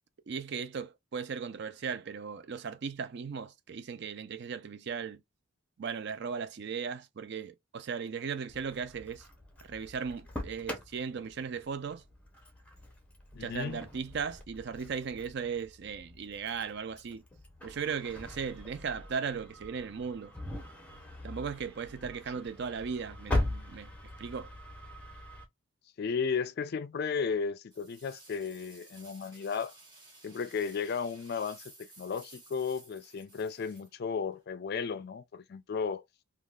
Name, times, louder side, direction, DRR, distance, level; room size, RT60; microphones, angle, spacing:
voice 1, 0.3-5.2 5.8-9.2 9.7-12.0 13.4-17.2 17.6-20.3 21.2-23.9 24.2-24.5, right 6 dB, 50° right, 0.4 m, -37 dB
Engine starting, 8.5-25.4, left 1 dB, 5° left, 0.6 m, -41 dB
voice 2, 13.3-13.8 26.0-29.7 30.2-36.0, left 5 dB, 45° left, 0.3 m, -34 dB
sound 1, 27.7-34.4, right 2 dB, 20° right, 1.1 m, -55 dB
3.5 x 2.3 x 2.3 m
head